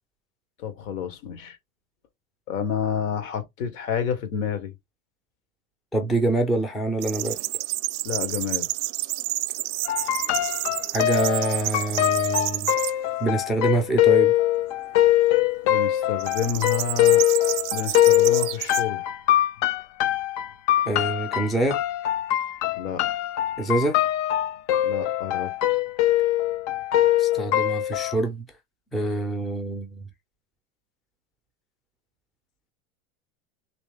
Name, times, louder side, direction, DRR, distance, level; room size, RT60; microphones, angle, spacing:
voice 1, 0.6-1.6 2.5-4.7 8.0-8.7 15.6-17.3 17.7-19.1 22.8-23.0 24.8-25.8, left 7 dB, 80° left, 1.3 m, -29 dB
voice 2, 5.9-7.4 10.9-12.7 13.2-14.3 20.9-21.8 23.6-24.0 27.2-28.4 28.9-30.0, right 2 dB, ahead, 0.3 m, -25 dB
sound 1, 7.0-12.9 13.5-14.0 16.2-18.8, right 19 dB, 65° right, 0.5 m, -30 dB
sound 2, 9.9-28.1, left 13 dB, 55° left, 0.6 m, -22 dB
3.2 x 3.1 x 3.3 m
supercardioid pair, 135°, 40 cm